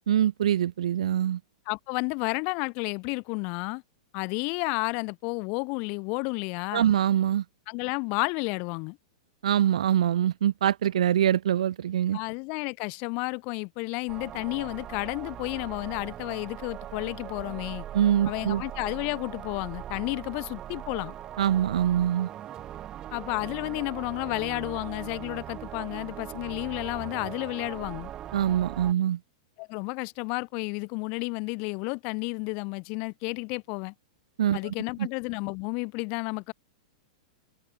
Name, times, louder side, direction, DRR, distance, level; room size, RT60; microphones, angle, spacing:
voice 1, 0.1-1.4 6.7-7.4 9.4-12.2 17.9-18.6 21.4-22.3 28.3-29.2 34.4-34.6, right 10 dB, 85° right, 0.3 m, -24 dB
voice 2, 1.7-3.8 4.1-6.9 7.7-9.0 12.1-17.8 18.3-21.2 23.1-28.1 29.6-33.9 34.5-36.5, left 34 dB, 30° left, 0.4 m, -32 dB
sound 1, 14.1-28.9, right 11 dB, 20° right, 1.2 m, -40 dB
supercardioid pair, 170°, 3 cm